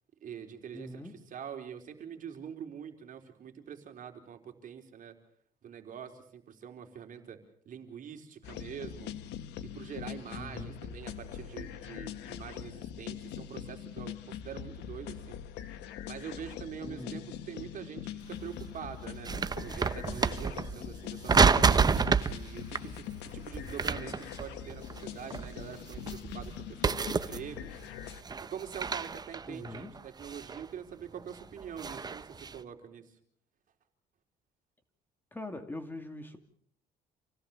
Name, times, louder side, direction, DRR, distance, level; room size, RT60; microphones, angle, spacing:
voice 1, 0.2-5.2 5.6-7.4 7.6-9.1 9.6-15.4 16.1-19.3 19.6-21.8 22.3-27.8 28.5-33.2, right 8 dB, 50° right, 5 dB, 4.1 m, -44 dB
voice 2, 0.7-1.3 10.3-10.8 16.8-17.3 29.5-29.9 35.3-36.4, left 1 dB, 10° left, 6 dB, 2.5 m, -42 dB
sound 1, 8.4-28.2, left 10 dB, 85° left, 1.5 m, -43 dB
sound 2, 18.2-18.3 18.7-20.9 21.2-22.4 22.7-22.9 23.5-25.0 25.3-26.6 26.8-27.7 28.1-30.7 31.2-32.6, right 5 dB, 25° right, 0.9 m, -29 dB
28.0 x 17.0 x 7.2 m, 0.63 s
cardioid pair, 110°, 17 cm